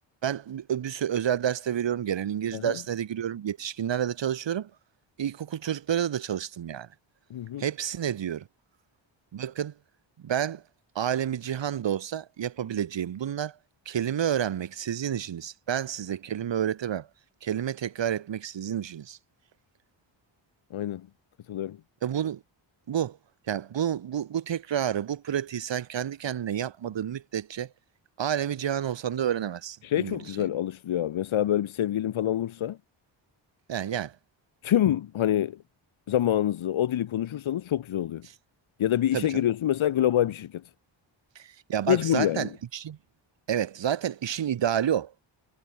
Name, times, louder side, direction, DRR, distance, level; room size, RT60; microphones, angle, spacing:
voice 1, 0.2-4.7 5.2-6.9 7.6-8.5 9.3-9.7 10.2-10.6 11.0-13.6 13.9-17.1 17.4-19.2 22.0-22.4 22.9-23.2 23.5-27.7 28.2-30.5 33.7-34.2 39.1-39.4 41.4-43.0 43.5-45.1, right 9 dB, 65° right, 1.9 m, -29 dB
voice 2, 7.3-7.6 20.7-21.1 21.5-21.8 29.8-32.8 34.6-35.6 36.1-38.2 38.8-40.6 41.9-42.5, left 11 dB, 80° left, 1.4 m, -26 dB
wide cardioid pair, 140°, 47 cm